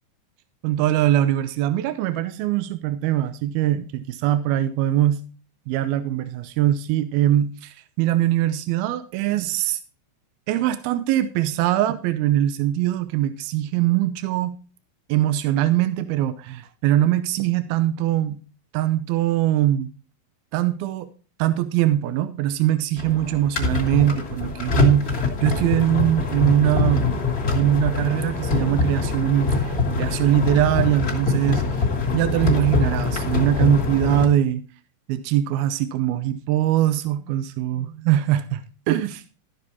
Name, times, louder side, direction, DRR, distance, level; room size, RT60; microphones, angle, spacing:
voice 1, 0.6-5.2 5.7-9.8 10.5-14.6 15.1-18.4 18.7-19.9 20.5-21.1 21.4-27.2 27.5-31.6 32.1-34.6 35.1-39.1, right 12 dB, 80° right, 2.6 m, -22 dB
sound 1, 23.0-34.3, left 4 dB, 30° left, 2.0 m, -24 dB
13.0 x 7.3 x 4.2 m
omnidirectional pair, 4.4 m